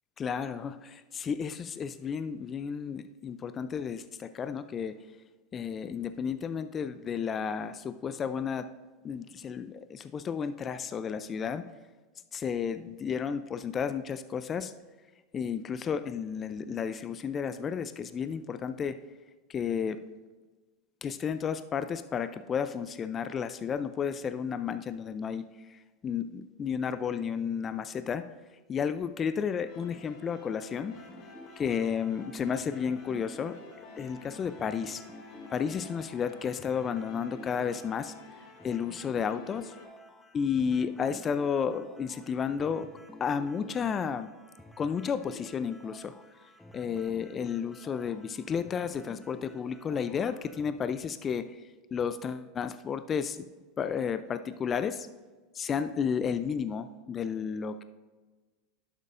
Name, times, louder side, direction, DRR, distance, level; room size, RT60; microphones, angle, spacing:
voice 1, 0.2-5.0 5.5-8.7 9.0-11.6 12.3-14.7 15.3-19.0 19.5-20.0 21.0-28.3 28.7-31.0 31.6-33.6 34.0-35.0 35.5-38.1 38.6-39.7 40.3-42.9 43.2-44.3 44.8-46.1 46.7-51.6 51.9-53.5 53.8-55.1 55.5-57.8, left 7 dB, 30° left, 12 dB, 0.4 m, -32 dB
sound 1, 29.6-39.8, left 4 dB, 65° left, 1.9 m, -51 dB
sound 2, 30.9-50.7, left 1 dB, 5° left, 0.9 m, -52 dB
11.5 x 8.1 x 2.5 m, 1.3 s
hypercardioid pair, 105°, 0 cm